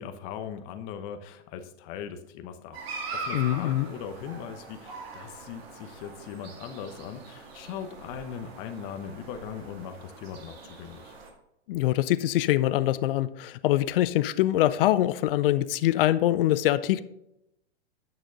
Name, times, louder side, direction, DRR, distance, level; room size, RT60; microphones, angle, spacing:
voice 1, 0.0-11.1, left 8 dB, 35° left, 0.9 m, -40 dB
sound 1, 2.7-11.3, right 3 dB, 60° right, 2.1 m, -42 dB
voice 2, 3.3-3.9 11.7-17.0, left 14 dB, 55° left, 0.5 m, -24 dB
8.9 x 6.2 x 3.9 m
hypercardioid pair, 125°, 33 cm